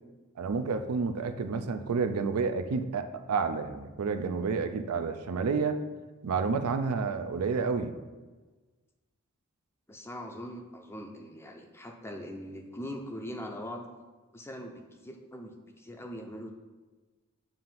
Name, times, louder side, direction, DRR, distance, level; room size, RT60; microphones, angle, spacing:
voice 1, 0.4-5.8 6.2-7.9, right 5 dB, 75° right, 9 dB, 0.5 m, -30 dB
voice 2, 9.9-13.9 14.3-16.5, equal, 10° left, 3 dB, 0.5 m, -41 dB
7.3 x 2.6 x 5.7 m, 1.3 s
head